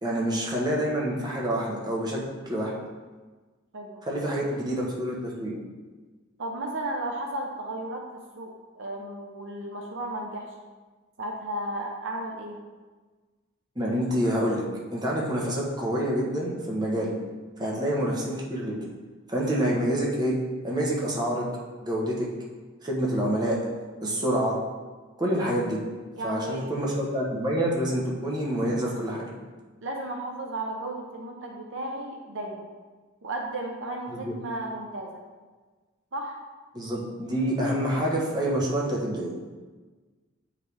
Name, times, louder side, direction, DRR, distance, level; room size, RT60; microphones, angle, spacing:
voice 1, 0.0-2.7 4.1-5.5 13.8-14.6 14.9-17.1 17.6-18.8 19.3-20.3 20.6-21.4 21.8-22.3 22.8-23.6 24.0-24.5 25.2-25.8 26.2-29.3 34.1-34.3 36.7-39.3, equal, 20° right, -3 dB, 1.2 m, -27 dB
voice 2, 3.7-4.4 6.4-10.6 11.2-12.6 17.6-17.8 24.0-24.2 26.1-26.7 29.8-32.6 33.2-35.1 36.1-36.4, right 1 dB, 60° right, 0 dB, 0.8 m, -34 dB
7.8 x 5.0 x 3.4 m, 1.3 s
head